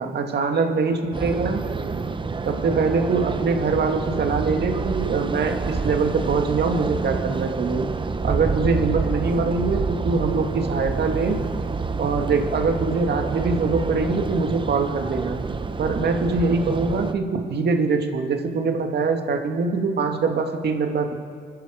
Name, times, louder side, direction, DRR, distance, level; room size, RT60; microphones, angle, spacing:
voice 1, 0.0-1.6 2.5-7.9 8.2-11.4 12.0-15.4 15.8-21.1, right 4 dB, 55° right, 4 dB, 2.0 m, -23 dB
sound 1, 1.1-17.1, right 4 dB, 25° right, 0.8 m, -28 dB
25.0 x 10.5 x 5.1 m, 2.1 s
cardioid pair, 90°, 20 cm